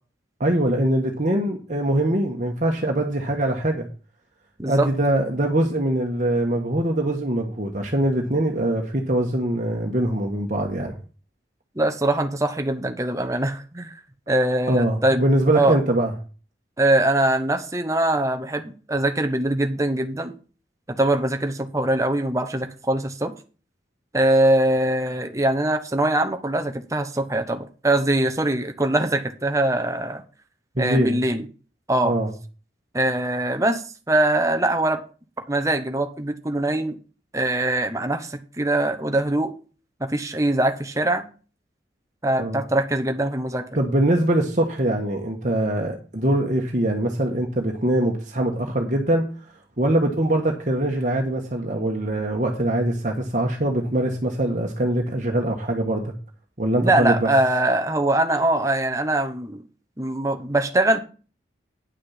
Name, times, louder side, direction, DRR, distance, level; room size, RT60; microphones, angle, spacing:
voice 1, 0.4-3.9 4.6-10.9 14.7-16.1 30.7-31.2 32.0-32.3 42.4-42.6 43.7-49.2 49.8-56.1 56.6-57.3, right 1 dB, 45° right, 1 dB, 1.5 m, -23 dB
voice 2, 11.8-14.0 14.3-15.2 15.5-15.8 16.8-20.3 21.0-23.3 24.1-30.2 30.8-31.5 31.9-32.1 32.9-35.0 35.5-37.0 37.3-39.5 40.0-41.2 42.2-43.8 56.8-59.6 60.0-61.0, right 1 dB, 15° right, 7 dB, 1.0 m, -22 dB
9.9 x 6.4 x 5.8 m, 0.36 s
head